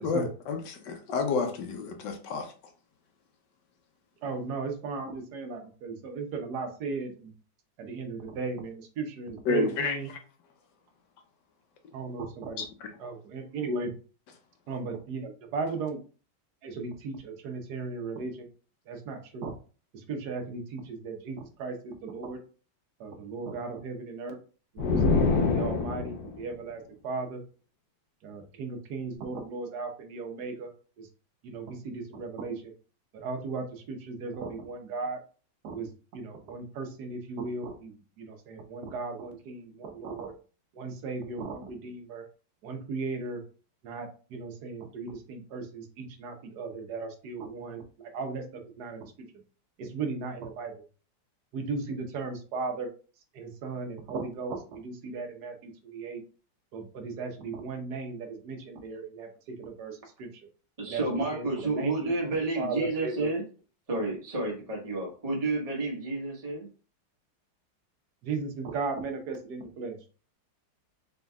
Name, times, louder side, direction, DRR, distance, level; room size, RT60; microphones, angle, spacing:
voice 1, 0.0-2.5 9.4-10.2 12.6-12.7, left 4 dB, 70° left, 1.2 m, -30 dB
voice 2, 4.2-7.3 7.8-10.1 11.9-12.6 13.0-13.9 14.7-16.0 16.6-18.5 18.9-19.5 19.9-22.4 23.0-24.4 24.7-27.4 28.2-30.7 31.0-31.1 31.4-32.7 33.1-35.2 35.6-40.3 40.7-42.2 42.6-43.4 43.8-49.1 49.8-50.7 51.5-52.9 53.3-56.2 56.7-60.3 60.9-61.0 61.3-63.3 68.2-70.0, right 4 dB, 60° right, 1.2 m, -36 dB
sound 1, 24.8-26.3, left 4 dB, 85° left, 0.8 m, -25 dB
voice 3, 60.8-63.4 63.9-66.7, right 2 dB, 25° right, 1.0 m, -30 dB
4.4 x 3.8 x 2.3 m
omnidirectional pair, 2.3 m